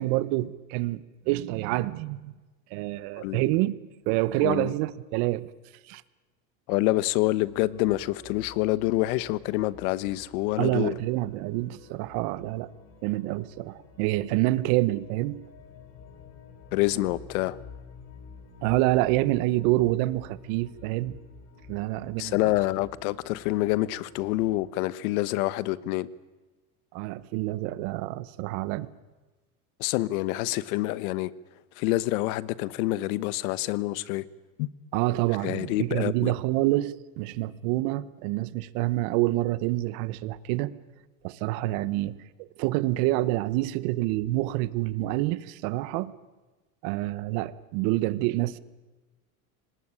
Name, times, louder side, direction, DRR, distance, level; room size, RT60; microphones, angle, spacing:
voice 1, 0.0-2.3 2.7-3.7 4.1-5.5 5.9-6.0 10.6-12.7 13.0-15.4 18.6-21.2 21.7-22.5 26.9-28.9 34.9-40.7 41.2-46.1 46.8-48.6, right 17 dB, 65° right, 1.2 m, -27 dB
voice 2, 6.7-10.9 16.7-17.6 22.2-26.1 29.8-31.3 31.8-34.2 34.6-34.7 35.4-36.3, left 17 dB, 75° left, 1.2 m, -27 dB
sound 1, 7.4-24.7, left 5 dB, 35° left, 4.4 m, -50 dB
25.5 x 19.0 x 9.9 m
supercardioid pair, 135°, 44 cm